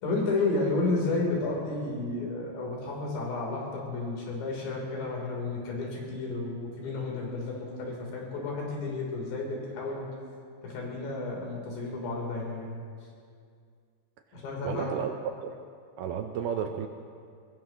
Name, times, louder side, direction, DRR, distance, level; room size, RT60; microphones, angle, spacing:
voice 1, 0.0-10.1 10.6-12.7 14.3-14.9, left 3 dB, 80° left, -2 dB, 5.7 m, -32 dB
voice 2, 14.6-15.6 16.0-16.9, right 8 dB, 80° right, 5 dB, 2.4 m, -32 dB
22.5 x 21.0 x 3.0 m, 2.2 s
omnidirectional pair, 4.9 m